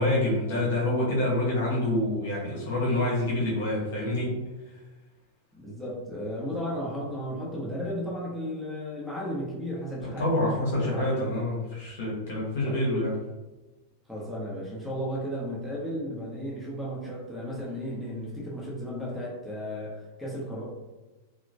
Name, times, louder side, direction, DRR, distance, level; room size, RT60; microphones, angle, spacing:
voice 1, 0.0-4.4 10.2-13.1, left 1 dB, 60° left, -4 dB, 0.9 m, -27 dB
voice 2, 5.6-11.4 12.6-12.8 14.1-20.6, equal, ahead, -6 dB, 0.8 m, -34 dB
2.9 x 2.1 x 2.6 m, 1.1 s
figure-of-eight pair, 90°, 0 cm